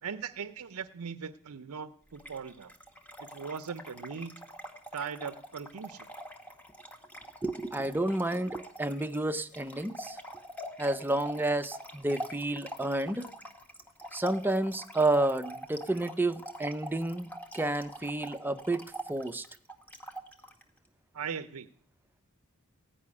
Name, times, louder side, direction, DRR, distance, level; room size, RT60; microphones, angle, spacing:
voice 1, 0.0-2.7 3.2-4.4 4.9-6.1 21.1-21.7, right 6 dB, 80° right, 12 dB, 0.6 m, -39 dB
Trickle dribble / Fill (with liquid), 2.2-20.6, right 1 dB, 5° left, 1.1 m, -45 dB
voice 2, 7.4-10.2 10.8-13.3 14.1-18.8 19.1-19.5, right 2 dB, 10° right, 9 dB, 0.5 m, -30 dB
16.0 x 5.6 x 9.6 m, 0.63 s
head